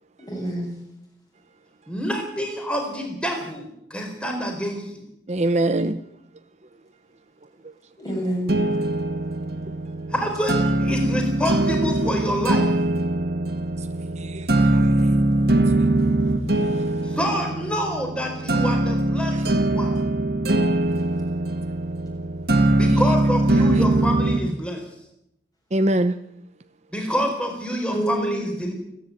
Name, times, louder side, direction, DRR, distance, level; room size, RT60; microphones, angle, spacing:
voice 1, 0.3-0.7 8.0-8.6 27.9-28.7, right 1 dB, 20° left, 7.4 m, -27 dB
voice 2, 1.9-5.0 10.1-12.6 17.0-20.0 22.7-24.8 26.9-28.7, equal, 5° left, 4.4 m, -27 dB
voice 3, 5.3-6.0 7.6-7.7 13.8-13.9 14.1-15.1 15.8-15.9 16.5-17.0 19.3-19.5 22.9-23.0 23.6-23.8 25.7-26.2 27.0-27.1, right 1 dB, 40° right, 0.8 m, -26 dB
sound 1, 8.5-24.5, right 2 dB, 55° right, 2.2 m, -22 dB
28.0 x 10.0 x 9.5 m
head